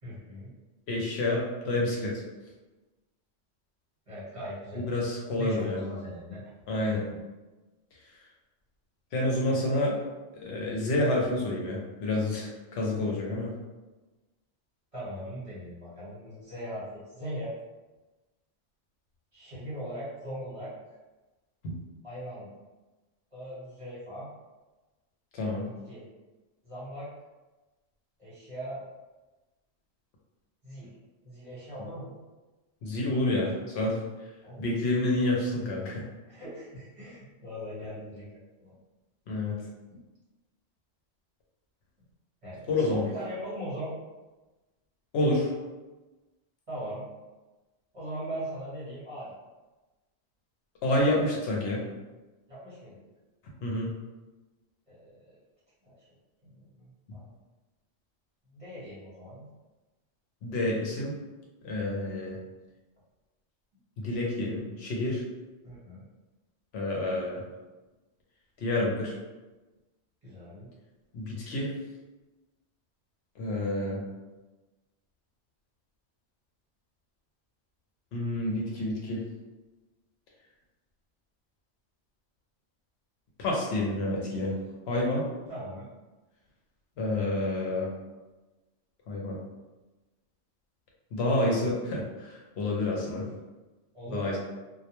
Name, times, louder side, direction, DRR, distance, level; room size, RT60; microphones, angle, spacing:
voice 1, 0.0-0.5 4.1-4.8 5.3-6.4 6.9-7.2 14.9-17.5 19.3-20.7 22.0-22.5 23.3-24.3 25.6-26.0 26.6-27.1 28.2-28.8 30.6-30.9 31.2-32.1 33.3-33.8 34.4-34.7 36.3-38.7 39.9-40.0 42.4-43.9 46.7-47.0 47.9-49.3 52.5-53.0 54.9-55.3 55.8-55.9 56.4-57.3 58.5-59.5 65.6-66.0 70.2-70.7 85.5-85.8 93.2-93.3 93.9-94.4, equal, 30° right, -11 dB, 1.1 m, -40 dB
voice 2, 0.9-2.2 4.9-5.8 6.7-7.0 9.1-9.9 10.4-13.5 21.6-21.8 25.3-25.7 32.8-33.5 33.8-34.0 34.6-36.0 39.3-39.5 42.7-43.0 45.1-45.5 50.8-51.8 53.6-53.9 60.4-61.2 61.6-62.4 64.0-65.2 66.7-67.4 68.6-69.2 71.1-71.7 73.4-74.0 78.1-79.2 83.4-84.5 84.9-85.3 87.0-87.9 89.1-89.4 91.1-93.2 94.1-94.4, left 1 dB, 70° left, -2 dB, 0.8 m, -28 dB
2.2 x 2.1 x 2.9 m, 1.1 s
omnidirectional pair, 1.2 m